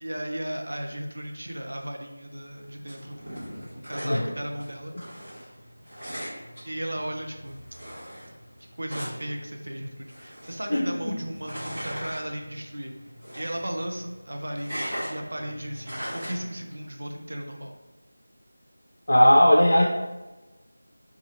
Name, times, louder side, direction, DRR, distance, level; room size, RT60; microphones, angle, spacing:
voice 1, 0.0-3.3 3.7-4.9 6.6-7.6 8.8-12.9 13.3-17.7, right 1 dB, 60° right, 2 dB, 0.5 m, -35 dB
sound 1, 2.4-16.9, equal, 25° right, 1.2 m, -40 dB
voice 2, 10.7-11.1 19.1-19.9, equal, 75° left, -3 dB, 0.5 m, -18 dB
3.1 x 2.3 x 2.8 m, 1.2 s
figure-of-eight pair, 180°, 0 cm